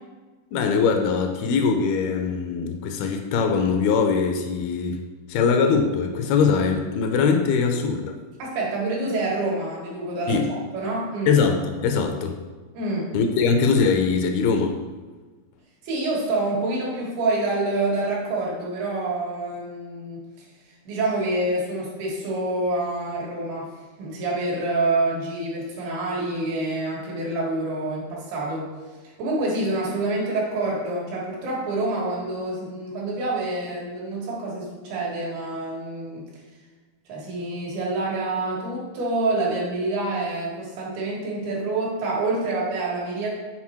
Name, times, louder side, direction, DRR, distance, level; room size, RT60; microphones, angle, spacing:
voice 1, 0.5-5.0 5.3-8.2 10.3-10.5 11.3-12.4 13.1-14.8, left 5 dB, 80° left, 4 dB, 2.4 m, -22 dB
voice 2, 8.4-11.4 12.8-13.1 15.8-20.2 20.9-23.7 24.0-28.7 29.0-36.3 37.1-43.3, right 2 dB, 80° right, -4 dB, 3.4 m, -27 dB
7.3 x 4.0 x 4.5 m, 1.4 s
omnidirectional pair, 4.5 m